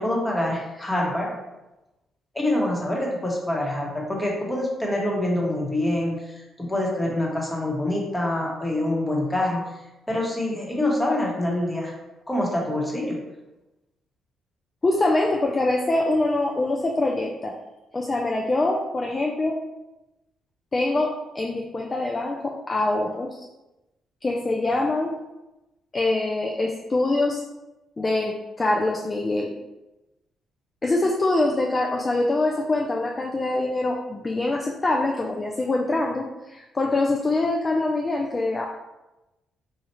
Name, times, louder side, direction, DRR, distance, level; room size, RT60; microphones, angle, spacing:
voice 1, 0.0-1.3 2.3-9.6 10.1-11.9 12.3-13.2, left 1 dB, 10° left, -2 dB, 1.0 m, -25 dB
voice 2, 14.8-17.5 17.9-19.6 20.7-23.3 24.2-25.2 25.9-27.4 28.0-29.5 30.8-38.7, left 2 dB, 25° left, 0 dB, 0.4 m, -24 dB
4.1 x 2.4 x 2.9 m, 1.0 s
cardioid pair, 90°, 0 cm